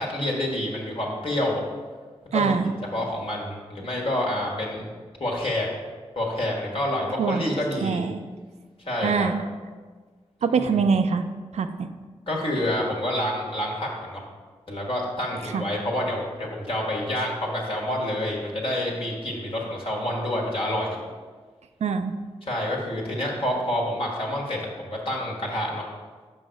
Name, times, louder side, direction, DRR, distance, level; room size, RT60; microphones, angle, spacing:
voice 1, 0.0-1.6 2.3-2.5 2.9-4.8 5.2-5.7 6.1-8.0 8.8-9.3 10.5-10.7 12.3-14.2 14.7-21.0 22.4-25.9, left 1 dB, 55° left, -3 dB, 1.6 m, -28 dB
voice 2, 2.3-2.7 7.2-7.4 7.8-8.2 9.0-9.4 10.4-11.3 11.5-11.9 15.5-15.7 21.8-22.1, right 5 dB, 75° right, 8 dB, 0.5 m, -23 dB
5.5 x 5.2 x 4.6 m, 1.4 s
cardioid pair, 45°, 11 cm